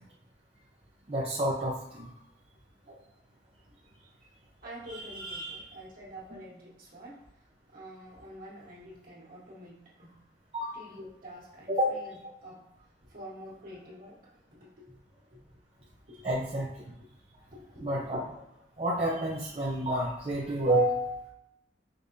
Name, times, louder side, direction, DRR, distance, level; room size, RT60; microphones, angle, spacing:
voice 1, 1.1-2.1 4.9-5.6 10.5-10.7 11.7-11.9 16.2-16.7 17.8-18.2 18.8-21.1, right 1 dB, 35° right, -5 dB, 0.7 m, -29 dB
voice 2, 4.6-7.3 7.7-10.1 10.7-12.2 12.4-12.7 13.1-15.5 16.1-16.3 17.5-18.1, equal, 55° right, -5 dB, 1.6 m, -47 dB
5.2 x 3.4 x 2.7 m, 0.81 s
head